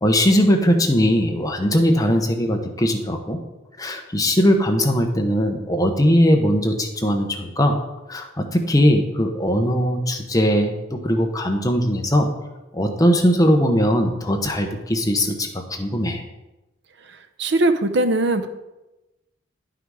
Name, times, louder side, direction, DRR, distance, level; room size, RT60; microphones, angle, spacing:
voice 1, 0.0-3.4 3.8-7.8 8.1-12.3 12.7-16.2, equal, 20° left, 4 dB, 0.9 m, -20 dB
voice 2, 17.4-18.5, right 2 dB, 60° right, 9 dB, 0.6 m, -19 dB
10.5 x 5.8 x 4.9 m, 1.0 s
head